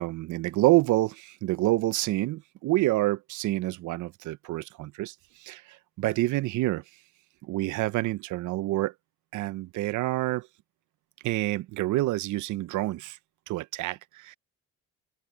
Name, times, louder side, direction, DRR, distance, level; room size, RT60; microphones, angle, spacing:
voice 1, 0.0-6.8 7.4-8.9 9.3-10.5 11.2-13.2 13.5-14.4, right 17 dB, 80° right, 0.5 m, -27 dB
open air
cardioid pair, 90°, 30 cm